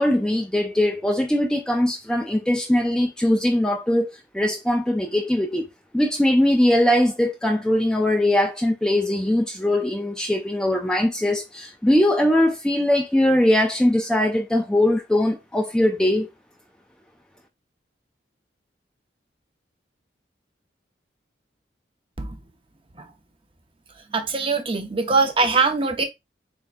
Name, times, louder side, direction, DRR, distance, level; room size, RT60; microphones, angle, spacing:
voice 1, 0.0-5.7 5.9-16.3, left 1 dB, 5° left, 0.3 m, -21 dB
voice 2, 24.1-26.0, right 4 dB, 30° right, 0.7 m, -22 dB
4.3 x 3.5 x 2.5 m
head